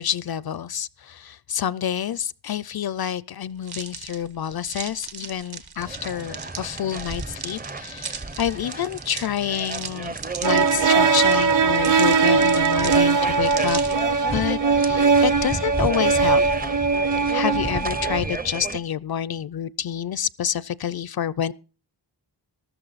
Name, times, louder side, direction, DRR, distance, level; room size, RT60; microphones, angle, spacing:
voice 1, 0.0-13.8 14.3-16.4 17.3-21.5, left 9 dB, 60° left, 0.5 m, -28 dB
sound 1, 3.6-14.2, right 5 dB, 60° right, 1.5 m, -37 dB
sound 2, 5.8-18.8, right 3 dB, 20° right, 0.6 m, -32 dB
sound 3, 10.4-18.2, right 5 dB, 45° right, 0.9 m, -20 dB
13.5 x 12.5 x 4.0 m
wide cardioid pair, 130°, 43 cm